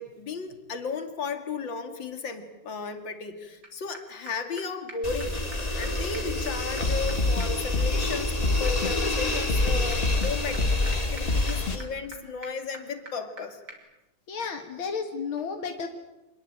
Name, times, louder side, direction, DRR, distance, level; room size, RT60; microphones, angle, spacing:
voice 1, 0.0-5.4 5.8-13.6, left 4 dB, 65° left, 8 dB, 3.0 m, -35 dB
sound 1, 3.6-3.7 3.9-4.0 4.3-4.4 4.6-4.7 4.9-5.0 5.2-5.3 5.5-5.6 5.8-5.9 6.1-13.4 13.7-13.8, right 3 dB, 55° right, 4.3 m, -46 dB
sound 2, 5.0-11.8, left 2 dB, 20° left, 2.4 m, -29 dB
sound 3, 6.8-8.1 8.4-8.9 9.5-11.0 11.3-11.8, left 3 dB, 35° left, 1.3 m, -26 dB
voice 2, 14.3-15.9, left 5 dB, 85° left, 6 dB, 2.5 m, -32 dB
26.5 x 21.0 x 8.8 m, 1.0 s
omnidirectional pair, 2.2 m